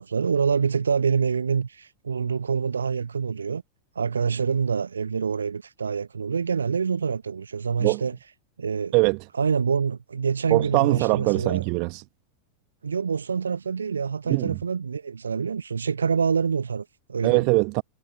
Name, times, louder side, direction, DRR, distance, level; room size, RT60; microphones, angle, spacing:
voice 1, 0.0-3.6 3.9-8.2 8.6-8.9 9.4-11.6 12.8-17.4, right 6 dB, 75° right, 0.7 m, -26 dB
voice 2, 8.9-9.2 10.5-12.0 14.3-14.6 17.2-17.8, right 34 dB, 45° right, 1.1 m, -22 dB
figure-of-eight pair, 90°, 0 cm